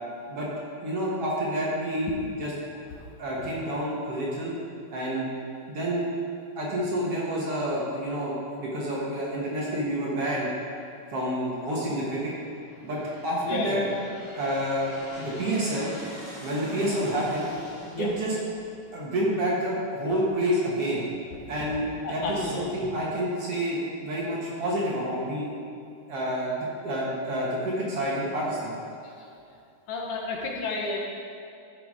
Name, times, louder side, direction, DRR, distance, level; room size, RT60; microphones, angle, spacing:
voice 1, 0.8-2.5 3.2-4.5 4.9-5.3 5.7-6.1 6.6-10.5 11.1-12.3 12.8-13.8 14.4-14.9 15.2-15.9 16.4-17.5 18.0-18.4 18.9-21.0 21.5-25.5 26.1-28.8, right 1 dB, 50° right, -5 dB, 2.1 m, -28 dB
Aircraft, 10.7-11.2 11.9-19.5, left 1 dB, 40° left, 3.4 m, -45 dB
voice 2, 13.4-13.9 17.9-18.1 21.4-21.5 22.0-22.9 29.0-29.3 29.9-31.0, left 3 dB, 70° left, -1 dB, 2.4 m, -32 dB
13.5 x 6.0 x 4.8 m, 2.5 s
omnidirectional pair, 3.9 m